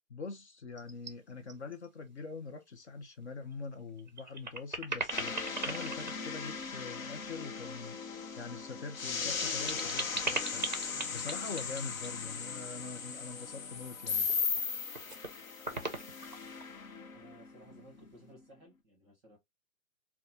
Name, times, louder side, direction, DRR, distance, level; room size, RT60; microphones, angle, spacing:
voice 1, 0.1-8.0 8.4-10.7 11.1-14.3, left 4 dB, 55° left, 0.7 m, -44 dB
sound 1, 0.8-1.1 1.5-1.9 2.2-2.3 3.5-3.6 4.0-7.1 8.7-12.1 14.1-14.6 14.9-15.3 15.6-16.7, right 3 dB, 35° right, 0.4 m, -39 dB
sound 2, 5.1-18.1, left 5 dB, 75° left, 1.0 m, -38 dB
voice 2, 17.1-19.4, right 1 dB, ahead, 0.9 m, -57 dB
3.8 x 2.3 x 2.7 m
hypercardioid pair, 180°, 41 cm